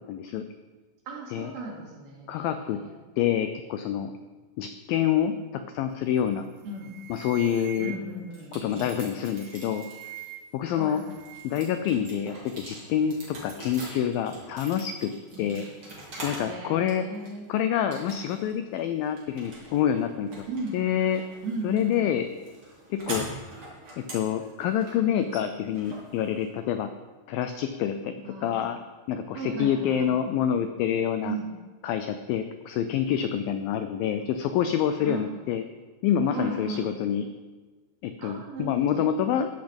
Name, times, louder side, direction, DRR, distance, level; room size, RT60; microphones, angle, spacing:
voice 1, 0.1-0.4 1.3-1.5 2.3-2.8 3.2-4.1 4.6-5.3 5.7-6.5 7.1-7.9 8.5-10.1 10.5-11.0 11.4-15.1 15.4-15.6 16.2-17.1 17.5-20.5 20.7-21.2 21.6-22.3 22.9-23.5 24.0-26.9 27.3-28.2 28.4-28.8 29.1-31.4 31.8-35.6 36.0-37.3 38.0-39.5, left 9 dB, 90° left, 9 dB, 2.0 m, -27 dB
voice 2, 1.1-2.9 6.6-6.9 7.8-9.0 10.7-11.0 13.3-13.5 15.3-15.5 16.4-17.4 20.5-20.8 21.4-22.0 28.2-28.5 29.3-30.1 31.2-31.5 35.0-35.3 36.3-36.9 38.2-39.1, right 2 dB, 65° right, -1 dB, 4.2 m, -36 dB
sound 1, 6.2-6.4 6.7-8.4 9.2-10.7 10.9-11.7, right 11 dB, 85° right, 2.7 m, -44 dB
sound 2, 8.3-10.3 10.8-16.6 16.9-17.5 17.9-18.5 18.8-26.7, right 1 dB, 30° right, 4.1 m, -43 dB
14.0 x 10.5 x 5.3 m, 1.3 s
omnidirectional pair, 4.9 m